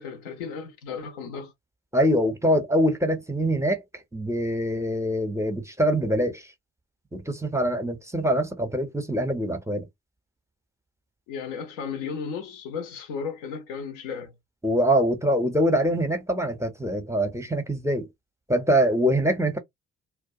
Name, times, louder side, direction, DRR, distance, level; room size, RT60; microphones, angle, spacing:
voice 1, 0.0-1.5 11.3-14.3, left 6 dB, 65° left, 0.8 m, -34 dB
voice 2, 1.9-3.8 4.1-6.4 7.1-9.9 14.6-18.1 18.5-19.6, equal, 5° right, 0.7 m, -24 dB
2.2 x 2.2 x 2.6 m
figure-of-eight pair, 45°, 38 cm